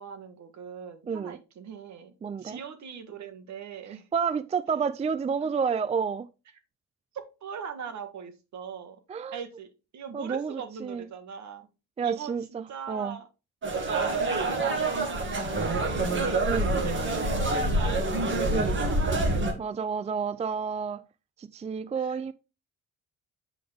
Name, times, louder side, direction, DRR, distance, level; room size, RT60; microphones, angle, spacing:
voice 1, 0.0-2.1 2.4-4.0 5.4-5.5 7.1-9.0 9.3-11.7 12.0-13.3 13.9-16.4 16.6-19.5 22.0-22.2, right 6 dB, 65° right, 1.7 m, -41 dB
voice 2, 1.1-1.4 2.2-2.6 4.1-6.3 9.1-9.4 10.1-11.1 12.0-13.2 16.5-16.8 18.5-18.8 19.6-21.0 21.4-22.3, right 6 dB, 20° right, 0.4 m, -30 dB
sound 1, 13.6-19.5, right 2 dB, 40° right, 2.2 m, -26 dB
7.8 x 5.0 x 3.5 m
cardioid pair, 90°, 30 cm